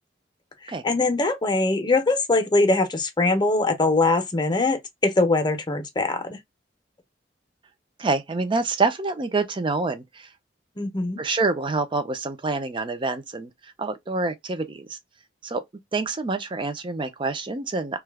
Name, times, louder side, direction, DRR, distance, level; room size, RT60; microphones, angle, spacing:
voice 1, 0.8-6.4 10.8-11.2, left 2 dB, 25° left, 0.7 m, -22 dB
voice 2, 8.0-10.3 11.2-15.0 15.4-15.6 15.9-18.0, right 3 dB, 30° right, 0.5 m, -27 dB
2.7 x 2.3 x 3.3 m
head